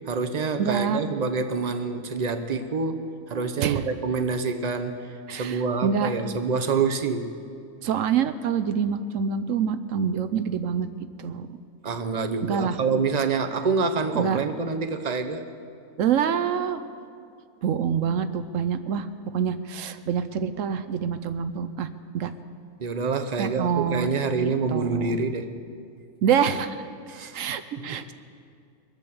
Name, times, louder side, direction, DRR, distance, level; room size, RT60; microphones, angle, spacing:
voice 1, 0.0-7.4 11.8-15.4 22.8-25.6 27.1-27.5 27.8-28.1, right 4 dB, 35° right, 7 dB, 0.7 m, -27 dB
voice 2, 0.6-1.0 3.6-3.8 5.3-6.1 7.8-10.9 11.2-11.5 12.4-12.8 14.2-14.4 16.0-16.8 17.6-19.1 19.3-21.9 22.1-22.3 23.4-24.1 24.3-25.2 26.2-26.9 27.3-28.1, right 7 dB, 65° right, 10 dB, 0.9 m, -26 dB
23.5 x 8.3 x 7.0 m, 2.4 s
omnidirectional pair, 1.6 m